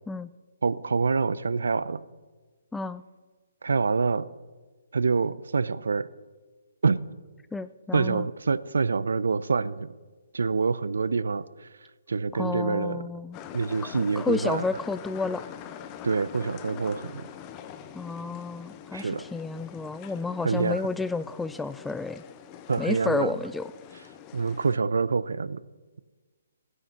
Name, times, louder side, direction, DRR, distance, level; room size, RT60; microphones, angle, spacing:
voice 1, 0.6-2.0 3.6-4.3 4.9-6.1 6.8-7.0 7.9-9.9 10.3-11.5 12.1-13.0 13.5-14.6 16.0-17.3 18.9-19.2 20.4-20.8 22.7-23.3 24.3-25.6, right 4 dB, 70° right, 17 dB, 0.6 m, -26 dB
voice 2, 2.7-3.0 7.5-8.3 12.3-13.4 14.2-15.4 17.9-22.2 22.8-23.7, left 3 dB, 5° left, 15 dB, 0.4 m, -31 dB
sound 1, 13.3-24.8, left 9 dB, 25° left, 0.9 m, -44 dB
16.0 x 9.7 x 5.9 m, 1.3 s
figure-of-eight pair, 135°, 0 cm